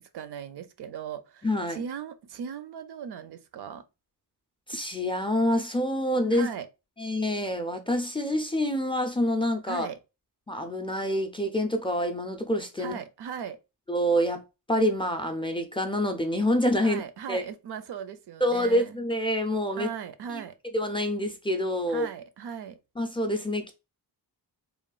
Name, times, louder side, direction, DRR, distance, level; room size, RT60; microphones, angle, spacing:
voice 1, 0.0-3.8 6.3-6.7 9.7-10.0 12.8-13.6 16.8-19.0 19.8-20.5 21.9-22.8, right 7 dB, 75° right, 0.5 m, -38 dB
voice 2, 1.4-1.8 4.7-6.5 7.0-9.9 10.5-13.0 13.9-17.0 17.3-17.4 18.4-19.9 20.3-20.4 20.7-22.1 23.0-23.7, equal, 15° left, 0.4 m, -27 dB
3.0 x 2.3 x 2.3 m
wide cardioid pair, 100°, 41 cm